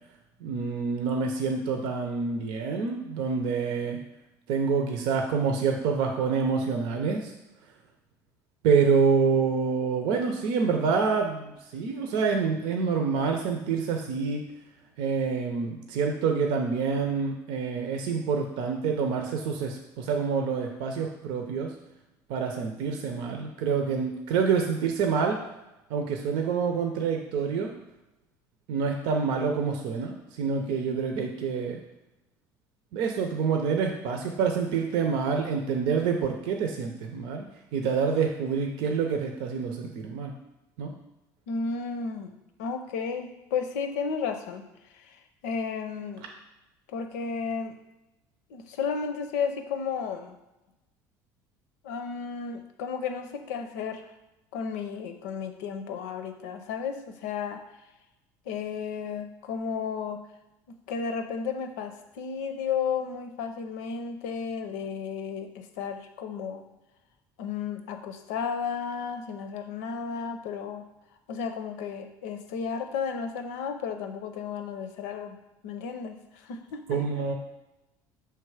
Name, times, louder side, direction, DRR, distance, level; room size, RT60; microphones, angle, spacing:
voice 1, 0.4-4.0 4.5-7.3 8.6-14.4 15.0-21.7 22.3-25.4 25.9-27.7 28.7-31.8 32.9-37.4 37.7-40.3 40.8-40.9 76.9-77.3, right 5 dB, 75° right, 3 dB, 0.7 m, -27 dB
voice 2, 41.5-42.3 42.6-44.6 44.9-46.2 46.9-47.8 48.5-50.4 51.8-54.0 54.5-57.6 58.5-60.2 60.7-66.6 67.4-70.8 71.3-75.4 75.6-77.0, left 6 dB, 90° left, 6 dB, 0.7 m, -33 dB
5.9 x 3.4 x 4.8 m, 0.96 s
supercardioid pair, 105°, 8 cm